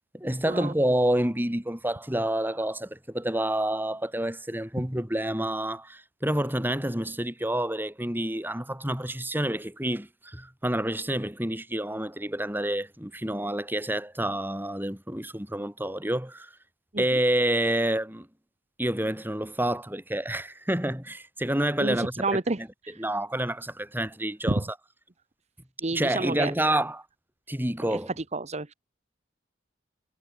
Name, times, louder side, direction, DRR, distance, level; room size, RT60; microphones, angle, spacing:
voice 1, 0.1-16.5 17.0-18.3 18.8-22.7 23.0-24.6 25.9-27.0 27.5-28.1, right 1 dB, 10° right, 5.2 m, -28 dB
voice 2, 21.8-23.0 24.5-24.6 25.8-26.5 27.9-28.0 28.3-28.7, right 2 dB, 35° right, 1.1 m, -30 dB
head